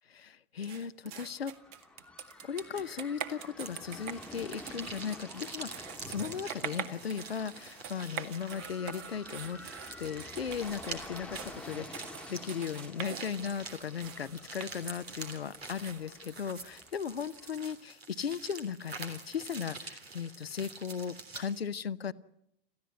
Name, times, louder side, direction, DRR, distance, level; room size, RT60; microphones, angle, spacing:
voice 1, 0.1-1.5 2.4-9.6 10.0-22.1, left 7 dB, 80° left, 15 dB, 0.9 m, -37 dB
sound 1, 0.6-17.0, right 9 dB, 45° right, 2.0 m, -45 dB
sound 2, 1.2-17.8, left 1 dB, 5° left, 1.6 m, -50 dB
sound 3, 3.6-21.6, right 3 dB, 80° right, 3.5 m, -47 dB
28.0 x 15.0 x 9.4 m, 0.83 s
figure-of-eight pair, 80°, 30 cm